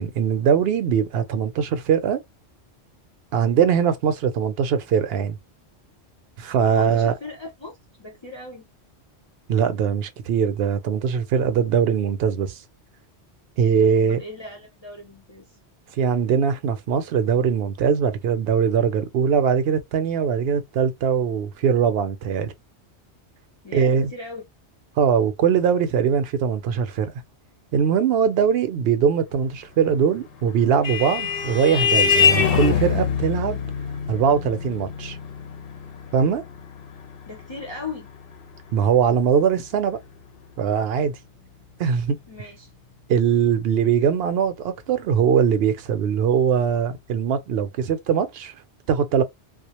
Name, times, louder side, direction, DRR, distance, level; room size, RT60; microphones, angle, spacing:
voice 1, 0.0-2.2 3.3-5.4 6.4-7.1 9.5-12.6 13.6-14.2 16.0-22.5 23.7-24.1 25.0-27.1 27.7-33.6 34.1-35.2 36.1-36.4 38.7-40.0 40.6-41.2 41.8-42.2 43.1-48.5 48.9-49.2, right 7 dB, 70° right, 0.8 m, -21 dB
voice 2, 6.7-8.7 13.9-15.5 23.6-24.5 37.3-38.1 42.3-42.7, left 3 dB, 40° left, 0.4 m, -38 dB
Vehicle horn car horn honking, 30.2-39.2, left 6 dB, 60° left, 0.8 m, -25 dB
2.4 x 2.1 x 2.8 m
omnidirectional pair, 1.1 m